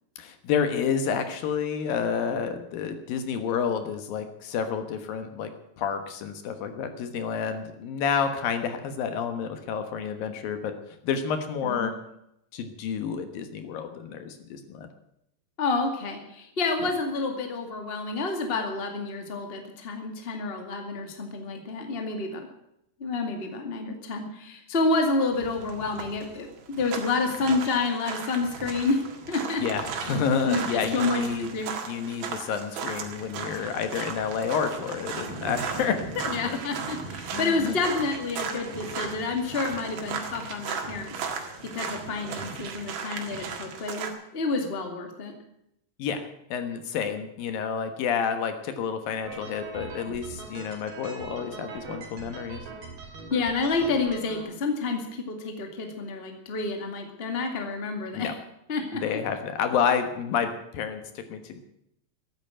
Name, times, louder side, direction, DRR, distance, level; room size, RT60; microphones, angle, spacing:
voice 1, 0.2-5.5 5.8-10.7 11.0-11.9 12.5-14.9 29.6-31.6 31.9-36.6 37.3-37.8 46.0-52.6 58.1-58.3 58.9-61.6, left 7 dB, 75° left, 8 dB, 3.1 m, -29 dB
voice 2, 15.6-22.5 23.0-29.0 29.3-29.6 30.4-31.2 31.5-31.7 36.3-41.1 41.6-45.3 53.3-58.3 58.7-59.2, left 3 dB, 20° left, 4 dB, 1.7 m, -29 dB
sound 1, 25.3-44.1, right 6 dB, 80° right, 3.7 m, -36 dB
sound 2, 49.2-54.4, right 4 dB, 65° right, 4.6 m, -41 dB
13.5 x 10.5 x 8.9 m, 0.79 s
omnidirectional pair, 4.3 m